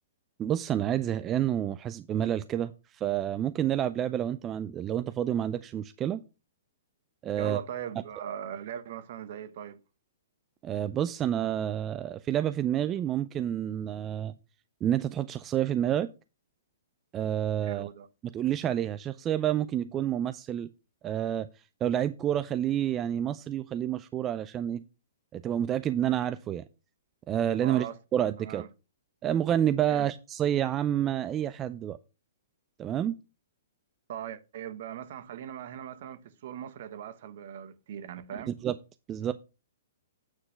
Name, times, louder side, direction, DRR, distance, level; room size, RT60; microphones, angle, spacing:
voice 1, 0.4-6.2 7.2-7.6 10.6-14.4 14.8-16.1 17.1-17.9 18.3-20.7 21.0-21.5 21.8-24.8 25.3-26.6 27.3-27.9 28.1-28.7 29.2-32.0 32.8-33.1 38.4-38.7 39.1-39.3, right 10 dB, 20° right, 0.4 m, -29 dB
voice 2, 7.4-9.8 17.6-18.1 27.6-28.0 28.4-28.7 29.9-30.1 34.1-38.5, right 9 dB, 55° right, 1.0 m, -40 dB
8.9 x 4.0 x 6.4 m
hypercardioid pair, 140°, 0 cm